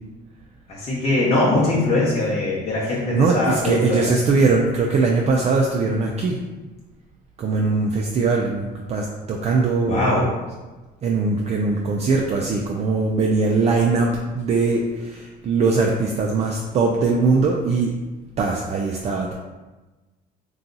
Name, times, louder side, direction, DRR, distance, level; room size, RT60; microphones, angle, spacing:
voice 1, 0.7-4.0 9.9-10.3, left 2 dB, 40° left, -6 dB, 0.8 m, -21 dB
voice 2, 3.1-6.4 7.4-10.1 11.0-17.9 18.4-19.3, right 4 dB, 40° right, 0 dB, 0.3 m, -21 dB
2.7 x 2.3 x 3.8 m, 1.2 s
cardioid pair, 110°, 17 cm